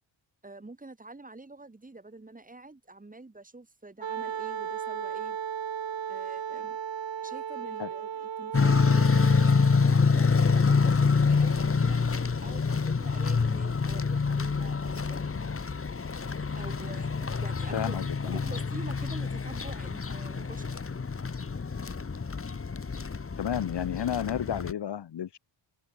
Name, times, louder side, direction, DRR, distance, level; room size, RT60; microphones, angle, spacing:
voice 1, 0.4-5.4 6.1-6.8 7.2-15.4 16.5-18.0 18.2-20.7, right 2 dB, 15° right, 5.6 m, -46 dB
Wind instrument woodwind instrument, 4.0-10.0, right 9 dB, 65° right, 6.4 m, -35 dB
sound 1, 8.5-24.7, left 5 dB, 25° left, 2.2 m, -26 dB
voice 2, 17.7-18.4 23.4-25.4, left 9 dB, 55° left, 1.5 m, -32 dB
open air
wide cardioid pair, 135°, 48 cm